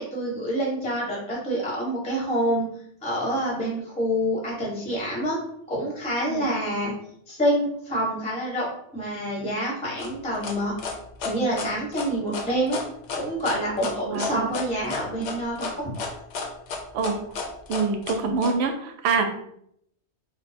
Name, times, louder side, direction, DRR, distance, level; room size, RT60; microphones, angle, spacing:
voice 1, 0.0-2.7 3.0-5.4 5.7-6.9 7.3-8.7 8.9-10.8 11.2-12.8 13.1-15.7, equal, 5° left, -4 dB, 0.8 m, -27 dB
sound 1, 10.0-18.5, left 4 dB, 70° left, 0.9 m, -32 dB
voice 2, 14.0-14.5 16.9-17.2 17.7-19.3, right 4 dB, 70° right, 5 dB, 0.8 m, -25 dB
2.7 x 2.1 x 4.1 m, 0.70 s
omnidirectional pair, 1.3 m